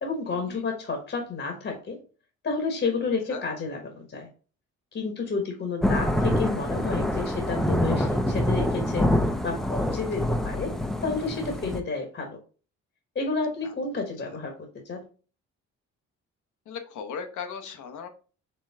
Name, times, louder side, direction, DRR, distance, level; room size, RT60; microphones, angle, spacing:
voice 1, 0.0-2.0 2.4-4.3 4.9-9.1 9.4-10.7 11.0-12.4 13.1-14.5 14.8-15.0, left 4 dB, 40° left, 3 dB, 1.2 m, -31 dB
Thunder / Rain, 5.8-11.8, left 1 dB, ahead, 0.6 m, -26 dB
voice 2, 16.7-18.1, left 6 dB, 75° left, 7 dB, 1.0 m, -36 dB
4.4 x 3.0 x 3.5 m, 0.37 s
cardioid pair, 90°, 30 cm